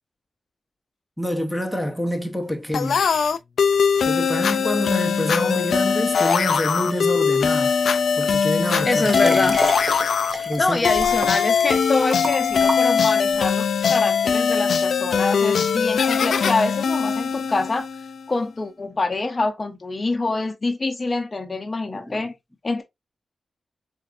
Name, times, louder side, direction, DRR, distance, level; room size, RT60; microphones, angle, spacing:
voice 1, 1.2-3.0 4.1-7.8 8.2-9.5 10.5-10.8 21.9-22.3, equal, ahead, 0.7 m, -26 dB
sound 1, 2.7-18.2, left 6 dB, 80° left, 0.3 m, -21 dB
Liquid, 8.7-13.3 14.0-14.1, right 2 dB, 40° right, 0.6 m, -31 dB
voice 2, 8.8-9.6 10.3-17.9 18.3-22.3 22.6-22.8, left 3 dB, 40° left, 0.6 m, -25 dB
4.0 x 2.6 x 2.4 m
cardioid pair, 80°, 0 cm